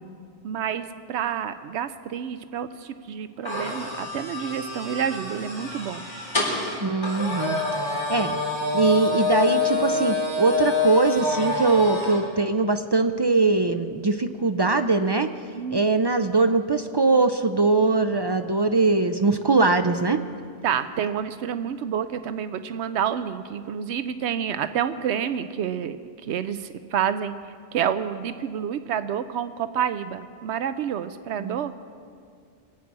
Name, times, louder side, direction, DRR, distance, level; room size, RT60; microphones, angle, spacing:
voice 1, 0.4-6.0 7.4-7.5 15.5-15.9 20.6-26.0 26.3-27.3 27.7-31.7, right 8 dB, 80° right, 12 dB, 0.9 m, -28 dB
sound 1, 3.4-12.2, left 3 dB, 25° left, 3.6 m, -27 dB
voice 2, 6.8-7.6 8.1-8.4 8.7-15.3 15.7-20.2 31.4-31.6, right 3 dB, 45° right, 8 dB, 0.3 m, -21 dB
22.5 x 8.5 x 6.1 m, 2.2 s
omnidirectional pair, 1.1 m